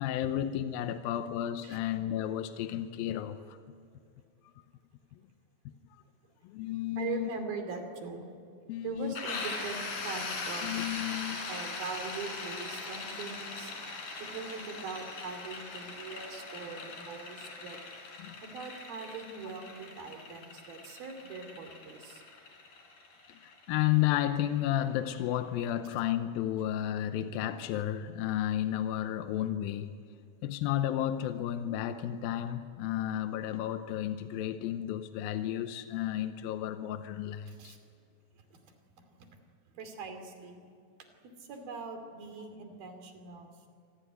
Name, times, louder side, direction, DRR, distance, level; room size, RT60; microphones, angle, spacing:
voice 1, 0.0-3.6 5.7-5.8 6.4-7.3 8.7-9.1 10.6-11.5 18.2-18.4 23.3-29.9 30.4-37.7, left 12 dB, 85° left, 9 dB, 2.6 m, -32 dB
voice 2, 7.0-8.3 8.8-10.8 11.5-13.7 14.2-17.8 18.4-22.2 37.5-37.8 38.5-38.6 39.2-39.3 39.7-40.6 41.4-43.7, right 4 dB, 90° right, 6 dB, 4.6 m, -41 dB
sound 1, 9.2-24.7, left 3 dB, 70° left, 5.2 m, -41 dB
27.0 x 18.5 x 9.4 m, 2.3 s
omnidirectional pair, 4.1 m